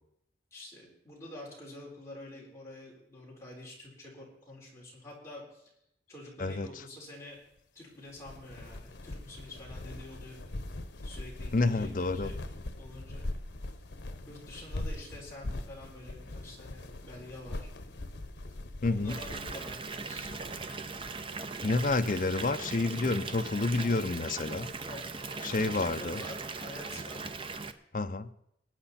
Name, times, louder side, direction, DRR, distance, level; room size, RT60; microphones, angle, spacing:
voice 1, 0.5-5.7 6.1-7.4 7.7-10.4 11.0-12.4 12.8-13.3 13.7-13.8 14.3-17.6 18.5-18.6 18.8-20.5 24.8-27.3, left 1 dB, 15° left, -5 dB, 3.9 m, -48 dB
sound 1, 8.1-22.3, left 1 dB, 85° left, 0.9 m, -42 dB
voice 2, 11.5-12.3 18.8-19.2 21.6-24.7 25.4-26.2 27.9-28.3, left 3 dB, 45° left, 9 dB, 0.5 m, -29 dB
Water tap faucet / Bathtub (filling or washing) / Fill (with liquid), 19.1-27.7, right 4 dB, 30° right, 0.6 m, -39 dB
20.5 x 8.8 x 4.2 m, 0.78 s
head